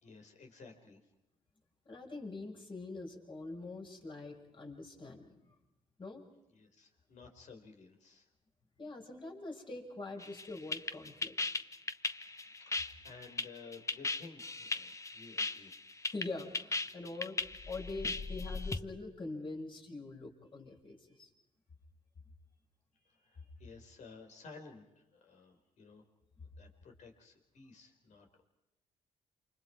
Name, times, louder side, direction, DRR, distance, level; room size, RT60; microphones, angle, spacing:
voice 1, 0.0-1.1 6.5-8.3 12.4-15.7 22.9-26.0 26.6-28.4, left 4 dB, 70° left, 4 dB, 5.0 m, -55 dB
voice 2, 1.8-5.5 6.0-6.2 8.8-11.4 16.1-17.4 17.7-21.3, left 3 dB, 40° left, 1 dB, 6.7 m, -44 dB
sound 1, 10.2-18.8, left 3 dB, 25° left, 1.2 m, -37 dB
29.0 x 27.5 x 4.8 m, 0.92 s
cardioid pair, 80°, 13 cm